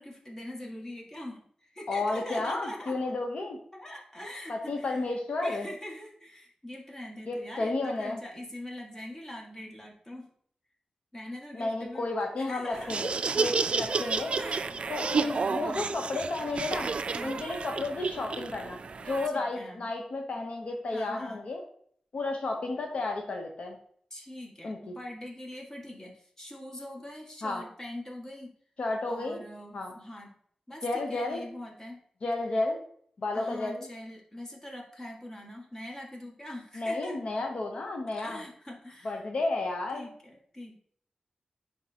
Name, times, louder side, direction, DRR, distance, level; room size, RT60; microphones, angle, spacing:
voice 1, 0.0-3.0 3.7-10.3 11.1-12.1 12.4-13.7 14.4-16.0 17.1-17.5 19.3-19.9 20.9-21.4 24.1-28.6 29.1-30.3 30.7-32.0 33.3-37.2 38.2-39.3 39.9-40.8, left 1 dB, 25° left, -1 dB, 1.8 m, -43 dB
voice 2, 1.9-3.6 4.5-5.7 7.3-8.2 11.5-14.3 14.9-16.9 17.2-21.6 22.1-23.8 24.6-24.9 27.4-27.6 28.8-29.4 29.7-29.9 30.8-31.4 32.2-32.8 33.2-33.8 36.8-38.4 39.0-40.1, left 2 dB, 70° left, 2 dB, 0.8 m, -32 dB
Laughter, 12.7-19.3, right 4 dB, 60° right, 0.3 m, -31 dB
9.8 x 3.6 x 2.8 m, 0.62 s
wide cardioid pair, 85°, 2 cm